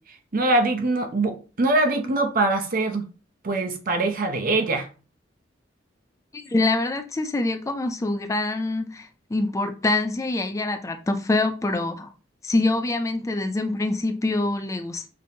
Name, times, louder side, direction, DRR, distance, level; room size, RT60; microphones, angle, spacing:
voice 1, 0.3-3.0 3.4-4.9, right 2 dB, 50° right, 0.7 m, -23 dB
voice 2, 6.3-12.1 12.4-15.1, left 2 dB, 15° left, 0.3 m, -25 dB
5.1 x 2.7 x 2.8 m
head